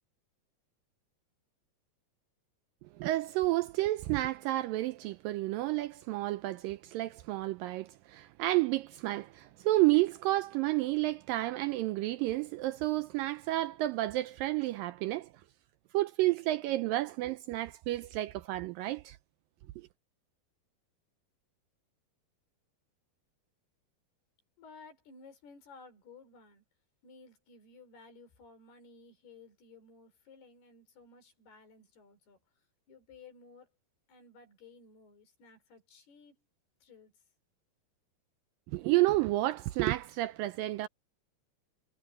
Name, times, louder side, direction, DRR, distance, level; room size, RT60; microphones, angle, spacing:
voice 1, 2.9-15.3 15.9-19.2 19.8-19.9 38.7-40.9, right 17 dB, 80° right, 2.0 m, -30 dB
voice 2, 24.6-26.6 27.0-32.4 32.9-33.7 34.1-36.4 36.8-37.2, left 4 dB, 85° left, 6.9 m, -56 dB
omnidirectional pair, 4.5 m